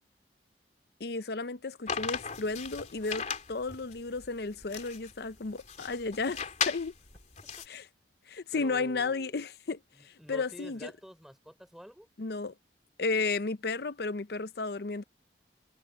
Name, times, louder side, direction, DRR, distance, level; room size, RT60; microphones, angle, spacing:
voice 1, 1.0-6.4 6.7-6.9 7.7-7.9 8.3-10.9 12.2-12.5 13.0-15.0, left 3 dB, 60° left, 0.7 m, -33 dB
sound 1, 1.9-7.7, left 6 dB, 40° left, 3.3 m, -37 dB
voice 2, 8.6-9.4 9.9-12.1, equal, ahead, 5.1 m, -48 dB
head